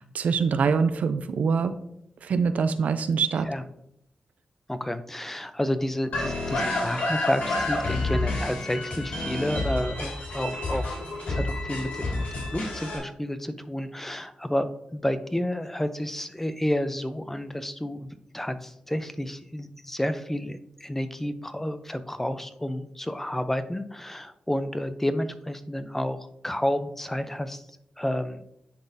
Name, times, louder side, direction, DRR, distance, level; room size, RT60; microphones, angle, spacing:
voice 1, 0.0-1.7 2.2-3.5, right 5 dB, 75° right, 10 dB, 0.5 m, -24 dB
voice 2, 4.7-10.9 11.3-14.7 14.9-26.2 26.4-27.6 28.0-28.4, left 1 dB, 10° left, 11 dB, 0.6 m, -30 dB
sound 1, 6.1-13.0, left 2 dB, 80° left, 2.2 m, -29 dB
10.5 x 3.9 x 2.7 m, 0.76 s
cardioid pair, 60°, 3 cm